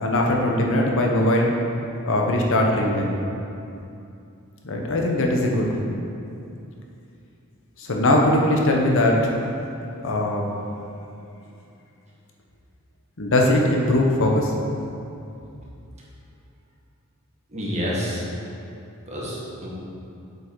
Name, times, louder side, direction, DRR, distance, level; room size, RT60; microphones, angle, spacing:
voice 1, 0.0-1.5 2.1-3.2 4.6-5.8 7.8-9.3 10.0-10.5 13.2-14.5, left 1 dB, 60° left, 0 dB, 0.9 m, -20 dB
voice 2, 17.5-18.3 19.1-19.7, equal, 30° right, -6 dB, 1.6 m, -28 dB
7.8 x 5.6 x 4.7 m, 2.7 s
head